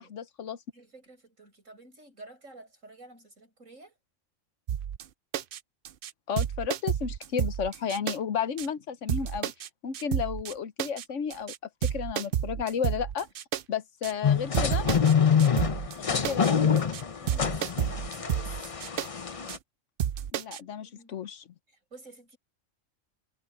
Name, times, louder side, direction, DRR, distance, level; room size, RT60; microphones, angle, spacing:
voice 1, 0.0-0.6 6.3-9.5 9.8-11.5 11.8-13.3 13.7-14.9 16.0-16.6 20.3-21.4, left 7 dB, 70° left, 1.2 m, -33 dB
voice 2, 0.7-3.9 14.1-14.2 16.3-18.6 20.5-21.2 21.7-22.4, right 2 dB, 85° right, 8.6 m, -51 dB
sound 1, 4.7-5.0 5.3-5.6 5.9-6.1 6.4-8.2 8.6-8.7 9.1-9.7 9.9-10.5 10.8-11.0 11.3-11.6 11.8-13.6 14.0-14.1 14.5-15.1 15.4-16.0 16.2-16.5 16.8-17.0 17.3-19.1 19.5-19.6 20.0-20.6, right 10 dB, 55° right, 0.6 m, -31 dB
sound 2, 14.2-19.6, left 7 dB, 35° left, 0.7 m, -26 dB
omnidirectional pair, 1.3 m